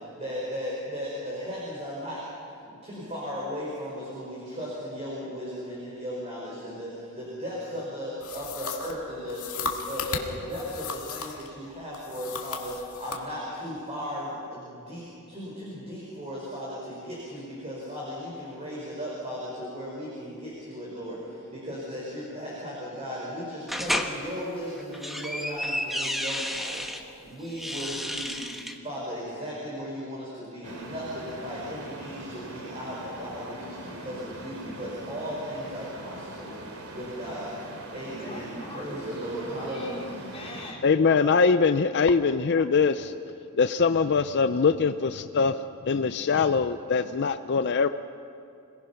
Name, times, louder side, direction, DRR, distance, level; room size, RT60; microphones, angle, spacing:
voice 1, 0.0-2.2 2.6-28.4 28.8-36.6 36.9-37.5 37.9-39.9, equal, 30° right, -6 dB, 4.8 m, -36 dB
sound 1, 8.2-11.5 11.9-13.2, left 5 dB, 80° left, 1.9 m, -35 dB
sound 2, 23.7-24.1 24.8-27.0 27.5-28.8, equal, ahead, 1.1 m, -31 dB
sound 3, 30.6-40.7, right 1 dB, 80° right, 2.7 m, -42 dB
voice 2, 38.2-39.0 39.6-42.7, left 1 dB, 25° left, -3 dB, 3.9 m, -43 dB
voice 3, 40.8-43.1 43.6-47.9, left 5 dB, 50° left, 9 dB, 0.5 m, -23 dB
26.5 x 18.5 x 5.8 m, 2.5 s
head